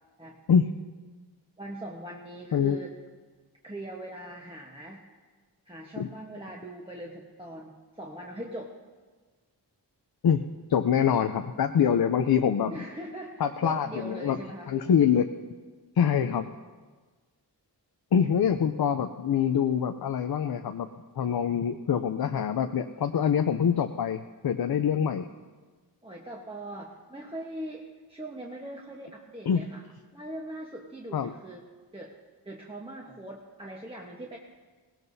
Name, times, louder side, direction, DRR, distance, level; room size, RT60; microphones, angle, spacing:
voice 1, 1.6-3.0 3.6-5.0 5.6-8.7 12.7-14.7 18.1-18.3 26.0-29.8 30.1-31.6 31.9-32.1 32.4-34.4, right 1 dB, 15° right, -2 dB, 1.1 m, -41 dB
voice 2, 10.7-12.7 13.4-14.4 14.7-15.3 16.0-16.5 18.1-20.9 21.2-25.3 29.5-29.6 31.1-31.3, left 8 dB, 60° left, 7 dB, 0.6 m, -25 dB
18.5 x 18.0 x 2.7 m, 1.4 s
wide cardioid pair, 115°, 42 cm